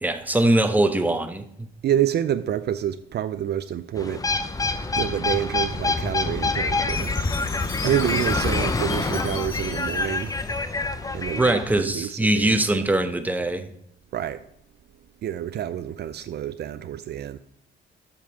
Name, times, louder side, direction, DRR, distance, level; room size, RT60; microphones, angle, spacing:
voice 1, 0.0-1.7 11.4-13.7, right 1 dB, 10° right, 0.9 m, -22 dB
voice 2, 1.8-4.3 5.0-7.1 7.8-10.3 11.1-12.6 14.1-14.4 15.2-17.4, right 10 dB, 55° right, 0.5 m, -28 dB
sound 1, 4.0-11.8, left 3 dB, 20° left, 0.6 m, -26 dB
Chime, 6.9-11.2, left 4 dB, 80° left, 1.5 m, -38 dB
7.6 x 5.4 x 5.1 m
cardioid pair, 90°, 20 cm